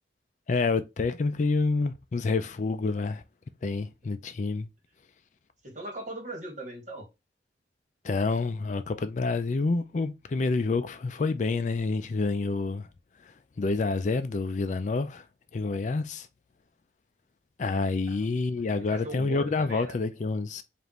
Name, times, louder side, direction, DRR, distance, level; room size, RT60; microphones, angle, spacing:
voice 1, 0.5-3.2 3.6-4.7 8.0-12.9 13.6-15.2 15.5-16.3 17.6-20.6, left 3 dB, 40° left, 0.4 m, -28 dB
voice 2, 5.6-7.1 18.1-18.2 18.7-19.9, right 1 dB, 40° right, 1.7 m, -39 dB
5.1 x 2.5 x 2.9 m
head